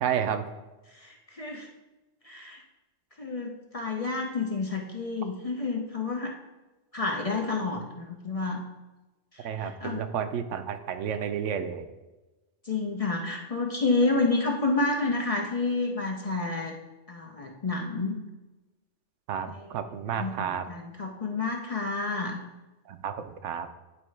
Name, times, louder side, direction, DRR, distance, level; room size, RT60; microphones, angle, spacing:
voice 1, 0.0-0.4 9.4-11.8 19.3-20.7 22.9-23.1 23.4-23.7, right 8 dB, 80° right, 9 dB, 0.9 m, -31 dB
voice 2, 0.9-1.7 2.2-2.6 3.2-6.3 6.9-8.6 9.3-10.0 12.6-16.7 17.1-18.2 19.5-19.7 20.2-22.4, left 3 dB, 40° left, 0 dB, 0.6 m, -29 dB
9.7 x 4.5 x 3.2 m, 1.1 s
omnidirectional pair, 1.2 m